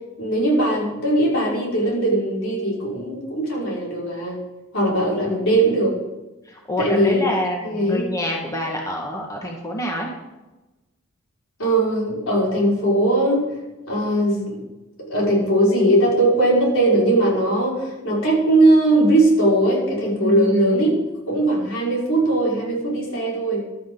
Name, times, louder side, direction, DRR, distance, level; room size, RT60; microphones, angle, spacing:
voice 1, 0.2-4.4 4.7-6.0 6.8-7.2 7.6-8.1 11.6-13.6 13.9-14.6 15.0-21.0 21.3-23.6, right 1 dB, 80° left, -4 dB, 5.2 m, -19 dB
voice 2, 5.0-5.4 6.5-10.1 20.2-20.8, equal, 15° left, -1 dB, 1.8 m, -27 dB
15.0 x 12.5 x 4.0 m, 1.1 s
head